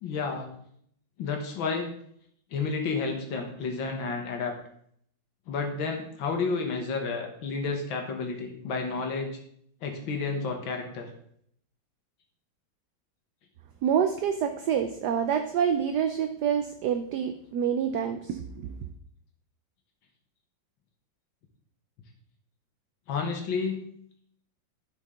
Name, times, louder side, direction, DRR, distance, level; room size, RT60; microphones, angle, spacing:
voice 1, 0.0-0.5 1.2-1.9 2.5-4.5 5.5-9.3 9.8-11.1 23.1-23.8, left 4 dB, 80° left, 3 dB, 1.9 m, -31 dB
voice 2, 13.8-18.7, right 8 dB, 70° right, 8 dB, 1.0 m, -27 dB
11.5 x 5.5 x 3.7 m, 0.67 s
omnidirectional pair, 2.1 m